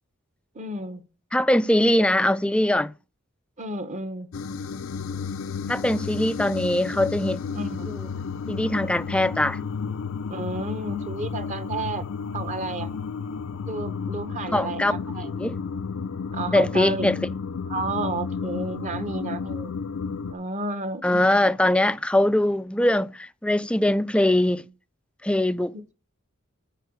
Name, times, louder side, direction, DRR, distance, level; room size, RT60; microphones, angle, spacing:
voice 1, 0.5-1.0 3.6-4.3 7.5-7.9 10.3-12.1 12.3-12.9 13.6-15.4 16.3-17.2 17.7-19.7 20.3-21.6 25.7-25.8, right 2 dB, 35° right, 1.0 m, -32 dB
voice 2, 1.3-2.9 5.7-7.4 7.9-8.1 8.5-9.6 14.5-14.9 15.3-15.6 16.5-17.2 21.0-24.7 25.2-25.9, left 1 dB, 5° left, 0.3 m, -22 dB
sound 1, 4.3-20.3, left 5 dB, 75° left, 0.5 m, -32 dB
9.0 x 4.5 x 6.3 m
head